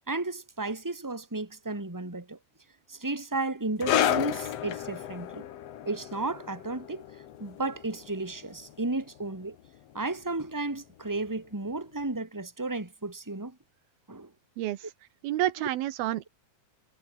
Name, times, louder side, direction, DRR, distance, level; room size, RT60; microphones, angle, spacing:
voice 1, 0.1-2.4 2.9-5.4 5.8-7.0 7.4-9.5 9.9-13.6 14.1-14.3, right 2 dB, 5° right, 2.9 m, -33 dB
sound 1, 3.8-10.8 11.1-11.3 12.0-12.1, left 11 dB, 60° left, 1.9 m, -33 dB
voice 2, 14.6-14.9 15.2-16.3, right 14 dB, 85° right, 3.0 m, -29 dB
omnidirectional pair, 4.3 m